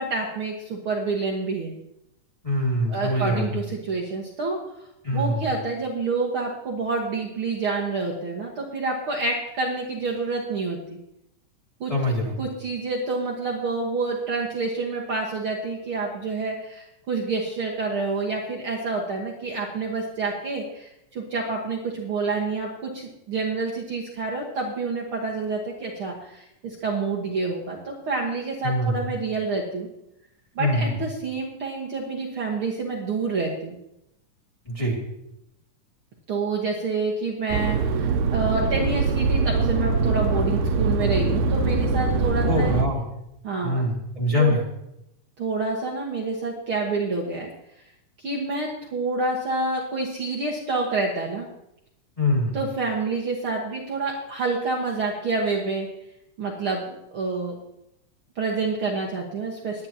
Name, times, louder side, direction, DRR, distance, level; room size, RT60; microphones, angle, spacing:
voice 1, 0.0-1.7 2.9-4.6 5.1-11.0 11.8-11.9 12.4-29.9 30.6-33.8 36.3-42.7 43.4-43.8 44.4-44.6 45.4-47.5 48.2-51.5 52.5-55.9 56.4-57.6 58.4-59.9, right 3 dB, 50° right, -2 dB, 1.9 m, -28 dB
voice 2, 2.4-3.6 5.0-5.5 11.9-12.3 28.6-29.0 30.6-31.0 34.6-35.0 42.5-43.0 43.6-44.6 52.2-52.6, left 1 dB, 10° left, -4 dB, 2.1 m, -24 dB
sound 1, 37.5-42.8, right 4 dB, 85° right, 2.3 m, -23 dB
22.5 x 9.6 x 2.9 m, 0.82 s
omnidirectional pair, 3.6 m